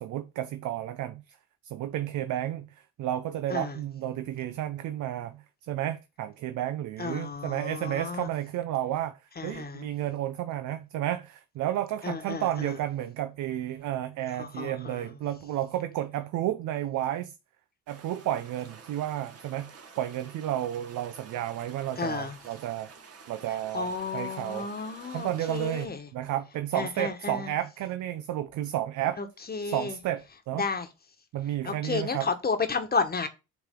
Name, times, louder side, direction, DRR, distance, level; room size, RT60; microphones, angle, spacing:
voice 1, 0.0-1.4 1.6-17.3 17.9-22.9 23.3-24.7 25.1-29.2 29.7-30.6 31.3-32.3, right 12 dB, 75° right, 0.6 m, -32 dB
voice 2, 7.0-8.3 9.4-9.9 12.0-12.8 14.3-15.1 22.0-22.4 23.5-26.1 26.7-27.5 29.2-30.0 30.5-30.9 31.6-33.3, left 4 dB, 30° left, 1.3 m, -32 dB
sound 1, 17.9-25.9, right 5 dB, 55° right, 1.4 m, -50 dB
8.4 x 3.4 x 3.6 m
cardioid pair, 90°, 30 cm